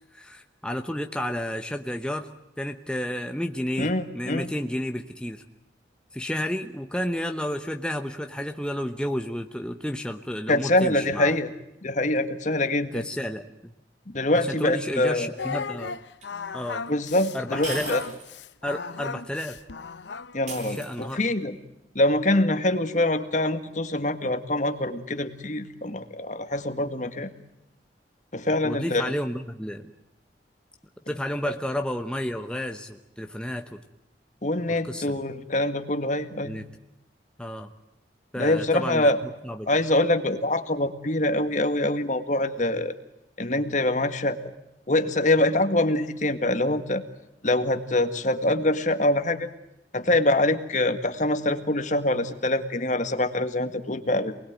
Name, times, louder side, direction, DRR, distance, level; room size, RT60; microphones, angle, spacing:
voice 1, 0.1-2.3 2.6-5.4 6.1-11.4 12.9-13.7 14.5-16.0 16.5-16.8 17.3-17.9 18.6-19.6 20.7-21.2 28.6-29.9 31.1-33.8 34.7-35.2 36.4-36.6 37.4-37.7 38.3-39.1 39.4-39.7, left 1 dB, 5° left, 5 dB, 1.0 m, -31 dB
voice 2, 3.8-4.5 10.5-11.5 11.8-13.0 14.1-15.3 16.9-18.0 20.3-21.6 22.0-27.3 28.3-29.1 34.4-36.6 38.4-39.2 39.7-42.9 43.4-44.4 44.9-47.0 47.4-49.5 49.9-54.4, left 1 dB, 45° left, 9 dB, 1.9 m, -24 dB
Singing, 15.4-20.4, left 5 dB, 85° left, 0.9 m, -35 dB
sound 1, 16.2-16.3 17.6-18.3 18.7-18.8 20.5-21.4, right 3 dB, 45° right, 7.2 m, -37 dB
28.0 x 20.5 x 9.1 m, 0.89 s
head